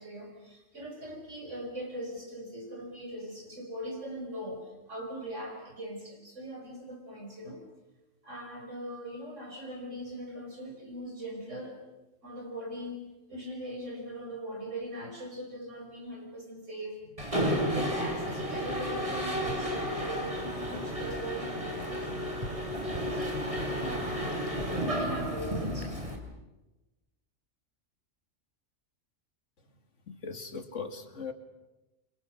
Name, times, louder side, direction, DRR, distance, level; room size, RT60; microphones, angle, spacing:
voice 1, 0.0-7.6 8.2-11.8 12.2-13.0 13.3-22.3 22.8-25.9, equal, 65° right, 2 dB, 6.0 m, -41 dB
Mechanisms, 17.2-26.2, equal, 25° right, 3.8 m, -32 dB
voice 2, 30.1-31.3, left 5 dB, 65° left, 7 dB, 2.6 m, -39 dB
29.0 x 24.5 x 6.6 m, 1.0 s
omnidirectional pair, 1.4 m